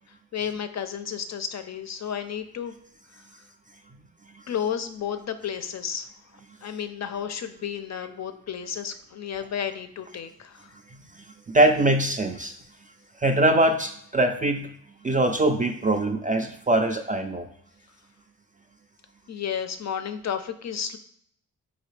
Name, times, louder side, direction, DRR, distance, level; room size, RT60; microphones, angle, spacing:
voice 1, 0.3-2.7 4.5-6.1 6.6-10.6 19.3-21.0, left 8 dB, 45° left, 9 dB, 0.5 m, -32 dB
voice 2, 11.2-12.5 13.2-14.7 15.0-17.5, right 1 dB, 20° right, 5 dB, 0.3 m, -22 dB
4.1 x 2.7 x 3.2 m, 0.66 s
cardioid pair, 55°, 38 cm